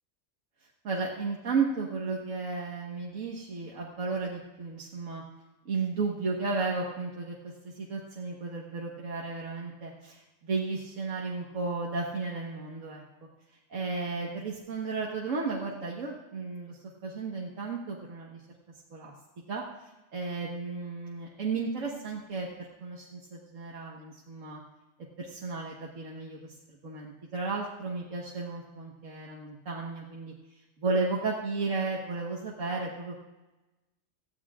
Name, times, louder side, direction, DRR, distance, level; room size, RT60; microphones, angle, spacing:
voice 1, 0.8-5.2 5.7-13.0 13.7-18.4 18.9-19.1 19.5-24.6 25.2-26.5 26.8-30.3 30.8-33.2, right 4 dB, 85° right, -3 dB, 1.8 m, -34 dB
19.0 x 14.5 x 2.4 m, 1.1 s
omnidirectional pair, 1.3 m